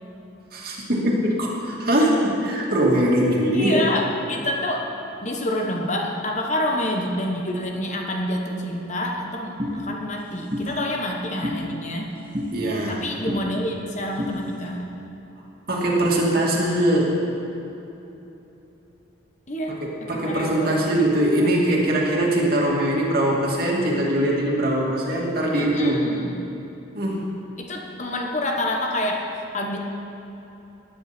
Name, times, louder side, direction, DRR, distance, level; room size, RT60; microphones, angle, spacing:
voice 1, 0.5-3.8 12.5-13.0 15.7-17.2 20.1-26.1 26.9-27.3, right 1 dB, 50° right, -3 dB, 2.5 m, -21 dB
voice 2, 3.5-12.1 12.9-15.0 19.5-21.0 25.5-26.4 27.6-29.3 29.5-29.8, left 1 dB, 35° left, 0 dB, 1.3 m, -28 dB
sound 1, 9.6-9.7 10.5-10.7 11.4-11.6 12.3-12.5 13.3-13.4 14.2-14.3, left 1 dB, 30° right, 2.0 m, -27 dB
19.0 x 10.5 x 4.4 m, 3.0 s
head